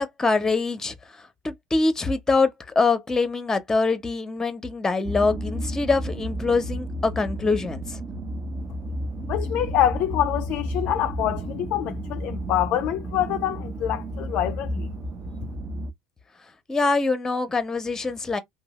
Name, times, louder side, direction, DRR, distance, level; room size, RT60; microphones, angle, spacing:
voice 1, 0.0-8.0 16.7-18.4, left 3 dB, 15° left, 0.7 m, -24 dB
sound 1, 5.0-15.9, right 1 dB, 40° right, 0.6 m, -32 dB
voice 2, 9.3-14.9, left 12 dB, 55° left, 0.3 m, -25 dB
2.7 x 2.3 x 3.0 m
hypercardioid pair, 75°, 3 cm